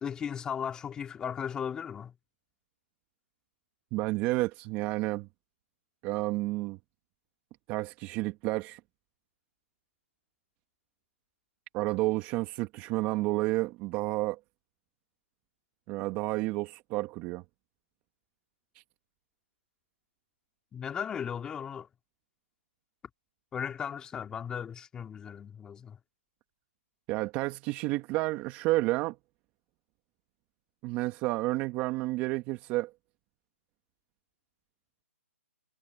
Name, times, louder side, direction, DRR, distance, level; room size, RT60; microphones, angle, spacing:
voice 1, 0.0-2.1 20.7-21.9 23.5-26.0, left 7 dB, 10° left, 2.5 m, -36 dB
voice 2, 3.9-5.3 6.0-6.8 7.7-8.8 11.7-14.4 15.9-17.4 27.1-29.2 30.8-32.9, right 20 dB, 20° right, 1.2 m, -30 dB
hypercardioid pair, 155°, 8 cm